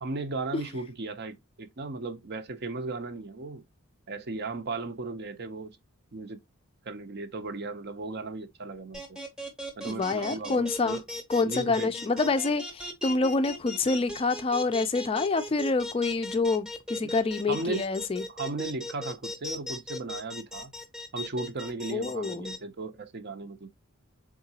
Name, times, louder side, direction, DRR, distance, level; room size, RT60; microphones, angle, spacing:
voice 1, 0.0-3.6 4.1-5.7 6.1-6.4 6.8-9.2 9.8-11.0 11.4-11.9 17.5-17.8 18.3-20.7 21.1-23.7, right 3 dB, 50° right, 0.6 m, -36 dB
sound 1, 8.9-22.6, left 1 dB, 5° right, 0.7 m, -37 dB
voice 2, 9.9-11.0 11.3-18.2 21.9-22.5, left 3 dB, 25° left, 0.3 m, -27 dB
3.8 x 3.6 x 2.8 m
head